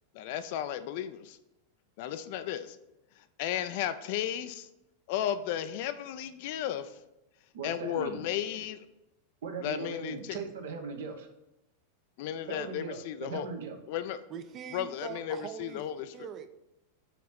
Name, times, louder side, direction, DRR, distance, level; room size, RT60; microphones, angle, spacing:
voice 1, 0.1-1.4 2.0-2.8 3.4-4.7 5.1-6.9 7.6-8.9 9.6-10.4 12.2-13.5 13.9-14.2 14.7-16.1, left 10 dB, 50° left, 12 dB, 0.4 m, -34 dB
voice 2, 7.5-8.2 9.4-11.3 12.5-13.8, right 4 dB, 60° right, 5 dB, 1.0 m, -39 dB
voice 3, 14.3-15.8 16.1-16.5, right 8 dB, 30° right, 10 dB, 0.6 m, -42 dB
5.7 x 4.1 x 5.8 m, 0.90 s
figure-of-eight pair, 90°, 0 cm